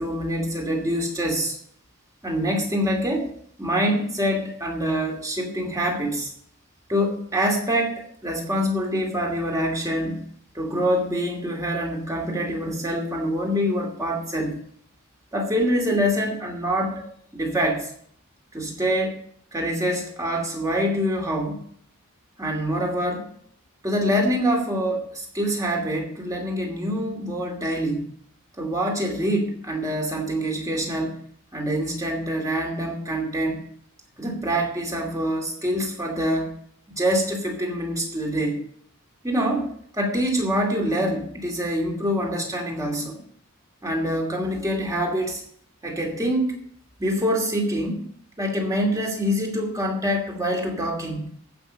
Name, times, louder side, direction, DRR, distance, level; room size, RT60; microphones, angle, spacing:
voice 1, 0.0-1.6 2.2-3.3 3.6-6.3 6.9-10.2 10.5-14.6 15.3-17.9 18.5-19.2 19.5-21.6 22.4-23.3 23.8-28.1 28.6-31.2 31.5-33.6 34.2-36.5 36.9-38.6 39.2-43.2 43.8-45.4 45.8-46.6 47.0-48.0 48.4-51.3, equal, 15° right, 1 dB, 2.5 m, -25 dB
14.5 x 5.9 x 6.8 m, 0.64 s
head